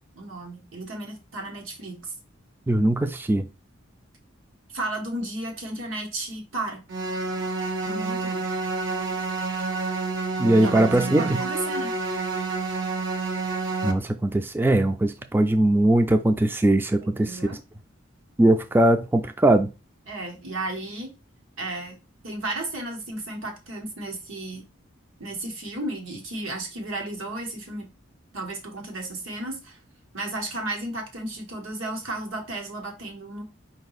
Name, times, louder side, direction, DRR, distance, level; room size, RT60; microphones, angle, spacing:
voice 1, 0.2-2.1 4.7-6.8 7.8-8.5 10.6-11.9 17.0-17.6 20.1-21.1 21.6-22.0 22.2-24.6 25.2-27.9 28.3-29.8 30.1-33.4, right 2 dB, 85° right, 1.4 m, -34 dB
voice 2, 2.7-3.5 10.4-11.4 13.8-17.3 18.4-19.7, right 1 dB, 10° right, 0.3 m, -20 dB
sound 1, 6.9-13.9, right 3 dB, 65° right, 0.9 m, -28 dB
4.9 x 2.7 x 4.0 m
head